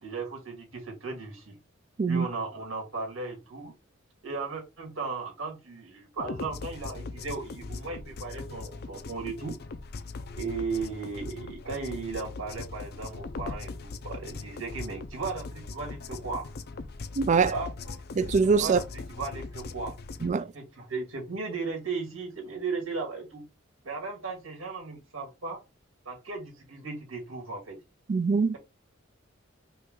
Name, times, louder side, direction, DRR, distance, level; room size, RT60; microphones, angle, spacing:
voice 1, 0.0-1.6 2.1-3.7 4.2-9.6 10.4-16.5 17.5-18.0 18.5-20.0 20.4-23.4 23.8-25.6 26.1-27.8, right 4 dB, 85° right, 2.1 m, -36 dB
sound 1, 6.2-20.3, left 3 dB, 50° left, 0.5 m, -40 dB
voice 2, 17.2-17.5 18.2-18.8 20.2-20.5 28.1-28.6, right 5 dB, 35° right, 0.3 m, -23 dB
5.4 x 2.4 x 3.8 m
head